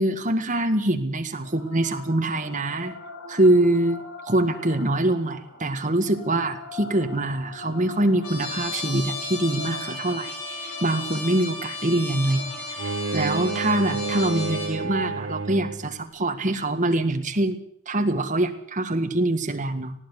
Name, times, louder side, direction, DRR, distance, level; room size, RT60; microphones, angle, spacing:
voice 1, 0.0-2.9 3.3-17.6 17.9-19.9, right 1 dB, 35° right, 6 dB, 1.8 m, -24 dB
sound 1, 1.4-16.4, left 2 dB, 55° left, 4.5 m, -43 dB
Trumpet, 8.2-14.8, left 3 dB, 85° left, 6.6 m, -34 dB
Bowed string instrument, 12.8-16.0, right 3 dB, 60° right, 0.8 m, -30 dB
19.5 x 16.5 x 8.2 m, 0.67 s
head